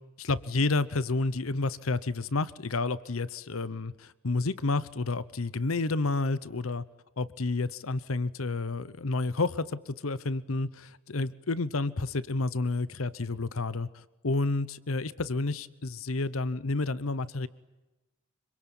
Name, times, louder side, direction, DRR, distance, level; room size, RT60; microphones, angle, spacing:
voice 1, 0.2-6.8 7.2-17.5, left 3 dB, 80° left, 17 dB, 0.9 m, -30 dB
26.5 x 24.5 x 9.0 m, 1.0 s
head